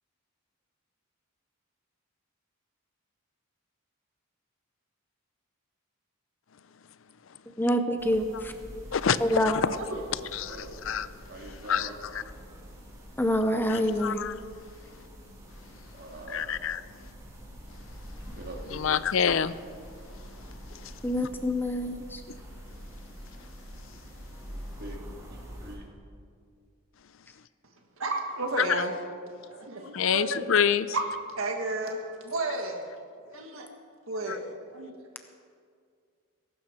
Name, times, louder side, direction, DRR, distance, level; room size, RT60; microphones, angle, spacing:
voice 1, 7.5-8.5 9.2-9.7 13.2-14.3 21.0-22.2, equal, 10° left, 7 dB, 0.6 m, -26 dB
sound 1, 8.0-25.8, equal, 15° right, 2.4 m, -46 dB
voice 2, 8.9-9.7 10.3-11.1 11.4-12.2 13.7-14.3 16.3-16.8 18.7-19.5 20.7-20.9 28.6-28.8 29.9-31.0 34.3-34.4, left 7 dB, 65° left, 16 dB, 0.5 m, -27 dB
voice 3, 9.9-10.7 11.3-11.9 15.9-16.4 18.4-18.8 24.5-25.0 25.6-25.8, right 1 dB, 45° right, 0 dB, 2.1 m, -43 dB
voice 4, 28.0-28.9 29.5-30.5 30.9-31.0 31.4-32.8 33.3-33.6 34.1-34.4 34.7-34.9, right 2 dB, 70° right, 2 dB, 1.6 m, -32 dB
21.5 x 12.0 x 4.4 m, 2.2 s
head